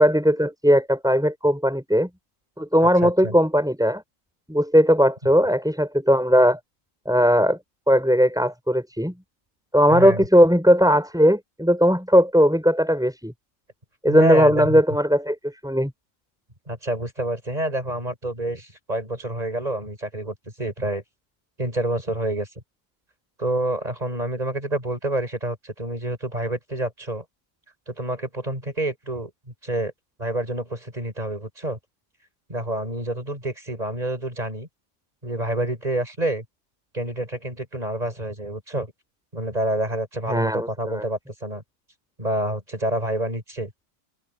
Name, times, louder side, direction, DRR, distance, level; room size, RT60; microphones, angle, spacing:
voice 1, 0.0-2.1 2.6-4.0 4.5-6.6 7.1-7.6 7.9-9.1 9.7-13.3 14.0-15.9 40.3-41.0, equal, ahead, 7.1 m, -18 dB
voice 2, 2.8-3.4 9.9-10.3 14.1-14.8 16.7-21.0 21.6-22.5 23.4-27.2 27.9-29.9 30.2-31.8 32.5-34.7 35.2-36.4 36.9-38.9 39.3-41.6 42.2-43.7, right 1 dB, 20° right, 6.1 m, -28 dB
omnidirectional pair, 2.0 m